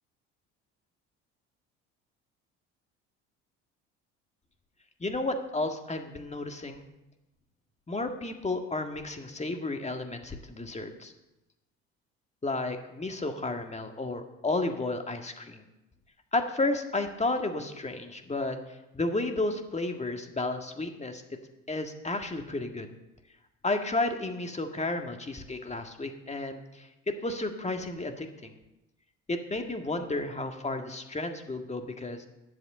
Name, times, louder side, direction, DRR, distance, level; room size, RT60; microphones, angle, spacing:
voice 1, 5.0-6.8 7.9-11.1 12.4-15.6 16.3-18.6 18.9-21.2 21.7-22.9 23.6-28.5 29.3-32.2, left 2 dB, 20° left, 5 dB, 1.8 m, -32 dB
10.5 x 7.9 x 7.4 m, 0.96 s
hypercardioid pair, 60°, 36 cm